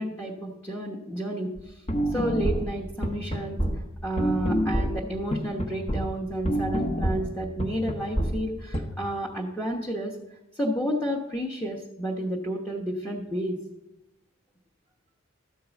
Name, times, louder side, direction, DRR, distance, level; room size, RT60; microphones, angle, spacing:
voice 1, 0.0-1.8 2.1-3.6 4.0-10.2 10.5-13.6, right 1 dB, 10° left, -3 dB, 1.0 m, -31 dB
sound 1, 1.6-1.7 1.9-6.1 6.4-8.8, equal, 30° left, 1.0 m, -27 dB
13.0 x 4.6 x 8.1 m, 0.94 s
head